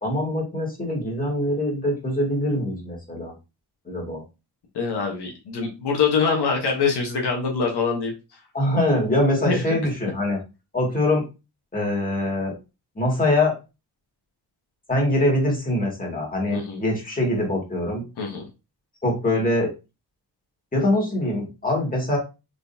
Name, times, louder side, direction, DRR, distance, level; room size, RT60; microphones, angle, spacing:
voice 1, 0.0-3.3 3.9-4.2 8.5-10.4 10.7-11.2 11.7-12.5 13.0-13.6 14.9-18.0 19.0-19.7 20.7-22.2, left 1 dB, 20° left, -1 dB, 2.1 m, -23 dB
voice 2, 4.7-8.1 9.5-9.8 16.5-16.8 18.2-18.5, left 5 dB, 85° left, 1 dB, 1.1 m, -24 dB
3.8 x 3.5 x 2.7 m, 0.27 s
cardioid pair, 70°, 39 cm